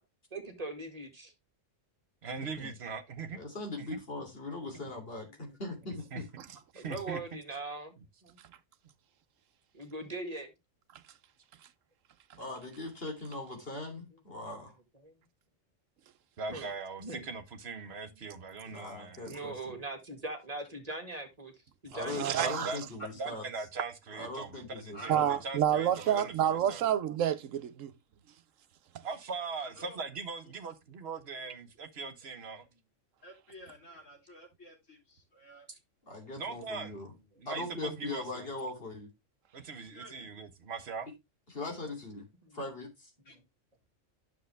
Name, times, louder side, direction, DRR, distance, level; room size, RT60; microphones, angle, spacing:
voice 1, 0.3-1.3 5.5-5.6 6.7-7.9 8.2-8.4 9.7-10.5 14.4-14.5 15.0-15.2 16.5-16.7 17.0-17.2 19.3-21.5 21.8-22.5 42.4-42.6 43.3-43.4, right 2 dB, 30° right, 1.9 m, -41 dB
voice 2, 2.2-3.4 3.8-4.0 6.1-6.2 6.7-7.4 16.4-19.3 22.3-26.8 29.0-32.6 36.4-37.0 37.4-38.5 39.5-41.1, right 4 dB, 55° right, 1.4 m, -41 dB
voice 3, 3.3-6.2 12.4-14.7 18.6-19.7 21.9-23.4 24.1-25.2 36.0-37.1 37.5-39.1 41.5-42.2 42.5-43.1, left 2 dB, 50° left, 3.2 m, -40 dB
voice 4, 22.1-22.7 25.1-27.9, right 10 dB, 85° right, 1.1 m, -28 dB
voice 5, 24.9-25.4 25.7-26.1 29.6-30.0 33.2-35.7 39.9-40.3 43.3-43.4, right 1 dB, 75° left, 4.0 m, -50 dB
9.4 x 6.9 x 3.3 m
omnidirectional pair, 1.3 m